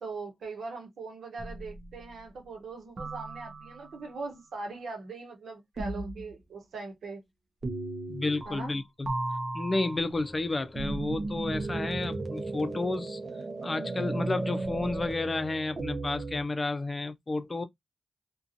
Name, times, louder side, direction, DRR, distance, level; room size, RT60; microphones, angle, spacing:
voice 1, 0.0-7.2 8.4-8.7, right 3 dB, 80° right, 0.9 m, -40 dB
sound 1, 1.4-2.2 3.0-4.0 5.8-6.3 7.6-8.8 9.1-16.4, right 2 dB, 55° right, 0.6 m, -35 dB
voice 2, 8.1-9.1 9.5-13.2 13.6-17.6, left 2 dB, 45° left, 0.5 m, -31 dB
2.4 x 2.3 x 2.5 m
supercardioid pair, 40°, 0 cm